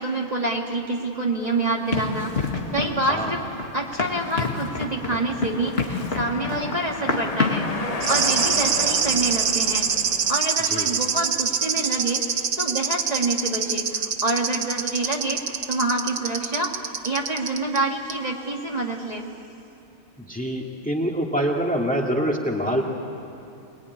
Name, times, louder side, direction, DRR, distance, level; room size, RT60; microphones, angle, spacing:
voice 1, 0.0-3.4 3.7-9.9 10.3-19.3, right 2 dB, 35° right, -1 dB, 2.0 m, -27 dB
sound 1, 1.4-10.4, left 3 dB, 35° left, 1.2 m, -35 dB
Run, 1.9-7.7, left 4 dB, 55° left, 2.3 m, -28 dB
voice 2, 3.0-3.3 10.7-10.9 20.2-22.8, equal, 5° left, 0 dB, 2.3 m, -25 dB
sound 2, 8.0-17.8 18.1-18.2, right 7 dB, 70° right, 1.3 m, -25 dB
23.0 x 22.0 x 9.8 m, 2.7 s
omnidirectional pair, 1.2 m